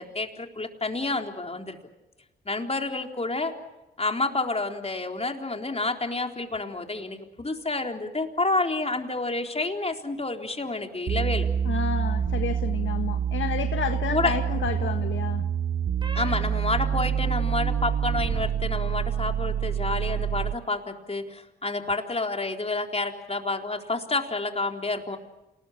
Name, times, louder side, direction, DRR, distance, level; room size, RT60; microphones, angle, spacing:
voice 1, 0.0-1.8 2.5-3.5 4.0-11.5 14.1-14.3 16.1-25.2, left 3 dB, 30° left, 3 dB, 4.0 m, -29 dB
sound 1, 11.1-20.7, right 8 dB, 60° right, 1.1 m, -27 dB
voice 2, 11.6-15.5, left 7 dB, 70° left, 6 dB, 1.5 m, -31 dB
sound 2, 14.2-15.0 16.0-16.3 16.9-18.5 18.7-19.3, right 1 dB, 20° right, 8.0 m, -41 dB
28.0 x 20.0 x 7.3 m, 1.0 s
supercardioid pair, 40°, 21 cm